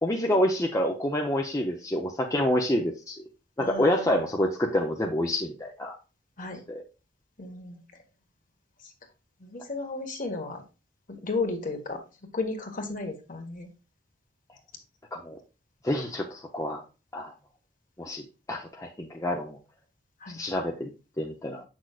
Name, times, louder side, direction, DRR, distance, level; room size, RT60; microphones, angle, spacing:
voice 1, 0.0-3.2 3.6-6.0 6.7-6.8 15.1-15.4 15.8-16.8 17.1-17.3 18.0-19.6 20.3-20.9 21.2-21.6, left 1 dB, 15° left, 0 dB, 0.7 m, -27 dB
voice 2, 3.6-4.2 6.4-6.6 7.4-7.8 9.4-10.6 11.1-12.0 12.3-13.7 20.2-20.4, left 3 dB, 45° left, 3 dB, 1.5 m, -34 dB
7.8 x 6.2 x 2.4 m, 0.31 s
head